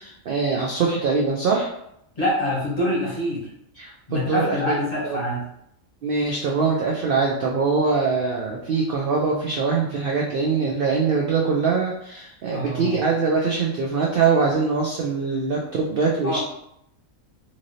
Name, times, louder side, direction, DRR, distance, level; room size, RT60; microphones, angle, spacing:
voice 1, 0.0-1.7 3.8-5.2 6.0-16.4, right 4 dB, 65° right, -2 dB, 0.5 m, -23 dB
voice 2, 2.2-3.5 4.1-5.4 12.5-13.0 16.2-16.4, equal, 35° left, -6 dB, 0.8 m, -25 dB
3.0 x 2.6 x 2.6 m, 0.75 s
omnidirectional pair, 1.4 m